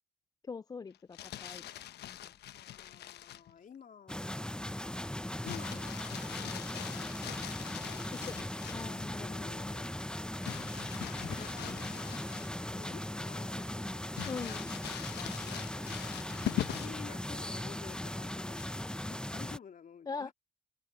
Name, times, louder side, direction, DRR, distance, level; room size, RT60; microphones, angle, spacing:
voice 1, 0.5-2.3 8.2-9.9 14.2-14.8 20.1-20.3, left 5 dB, 20° left, 0.3 m, -43 dB
Crumpling crinkling, 0.9-3.5 5.4-9.0 10.4-12.8 13.2-13.3 14.1-17.1 18.5-19.0, left 12 dB, 65° left, 1.2 m, -42 dB
voice 2, 2.5-4.2 5.4-7.4 7.8-8.4 8.7-10.0 11.2-12.2 12.6-14.0 15.1-16.2 16.7-20.3, left 7 dB, 45° left, 3.2 m, -52 dB
sound 1, 4.1-19.6, left 1 dB, 5° left, 0.9 m, -39 dB
hypercardioid pair, 60°, 19 cm